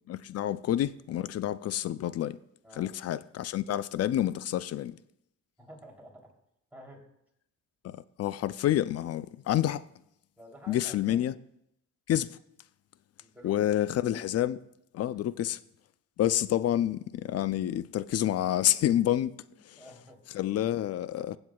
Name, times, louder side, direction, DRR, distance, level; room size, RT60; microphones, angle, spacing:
voice 1, 0.1-2.4 2.8-5.0 7.8-9.8 10.7-11.3 12.1-12.4 13.4-14.6 14.9-15.6 16.2-19.3 19.7-19.8 20.3-21.4, left 12 dB, 55° left, 0.4 m, -28 dB
voice 2, 5.6-6.3 6.7-7.0 10.4-11.2 13.2-13.7 14.1-14.3 15.1-15.3 19.5-20.2, equal, 5° right, 3.1 m, -51 dB
15.5 x 7.9 x 2.3 m
cardioid pair, 90°, 30 cm